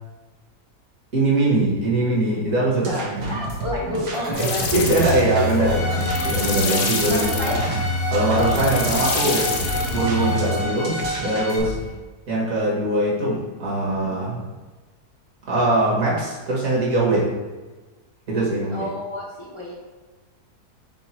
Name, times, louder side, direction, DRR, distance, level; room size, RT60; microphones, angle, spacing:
voice 1, 1.1-3.5 4.3-7.5 8.1-9.5 9.9-11.0 11.2-11.7 12.3-14.5 15.5-17.3 18.3-18.9, right 2 dB, 55° right, -6 dB, 1.8 m, -22 dB
voice 2, 2.9-5.8 7.1-7.6 11.8-11.9 18.7-19.8, left 2 dB, 45° left, -6 dB, 0.4 m, -29 dB
sound 1, 2.9-7.8 8.1-11.9, right 1 dB, 85° right, 1.5 m, -32 dB
sound 2, 4.3-10.7, left 3 dB, 80° left, 1.2 m, -26 dB
Bowed string instrument, 5.6-11.6, equal, 60° left, 0.8 m, -30 dB
5.6 x 2.2 x 4.2 m, 1.3 s
omnidirectional pair, 1.7 m